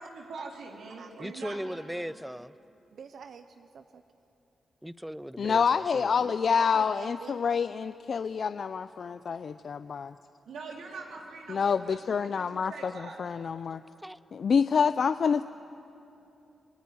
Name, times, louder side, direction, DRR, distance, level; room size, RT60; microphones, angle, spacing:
voice 1, 0.0-2.1 10.5-13.3, right 3 dB, 90° right, 3.3 m, -43 dB
voice 2, 1.2-2.5 4.8-6.3 14.0-14.2, equal, 5° right, 0.6 m, -38 dB
voice 3, 2.9-4.0 6.6-7.7, right 6 dB, 75° right, 0.8 m, -46 dB
voice 4, 5.4-10.1 11.5-13.8 14.3-15.4, left 6 dB, 60° left, 0.5 m, -27 dB
27.0 x 19.5 x 9.6 m
cardioid pair, 75°, 0 cm